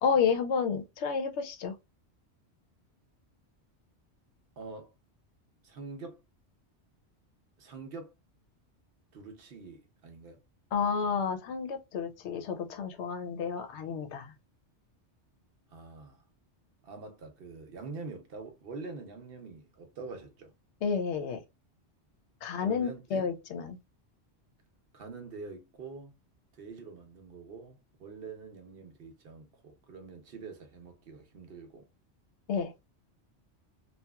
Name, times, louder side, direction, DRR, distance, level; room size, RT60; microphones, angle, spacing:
voice 1, 0.0-1.8 10.7-14.3 20.8-21.4 22.4-23.8 32.5-32.7, left 6 dB, 75° left, 0.9 m, -30 dB
voice 2, 4.6-4.9 5.6-6.2 7.6-8.1 9.1-10.4 15.7-16.2 16.8-20.5 22.6-23.3 24.9-26.2 26.5-31.9, right 4 dB, 60° right, 0.8 m, -45 dB
2.8 x 2.3 x 2.2 m
omnidirectional pair, 1.2 m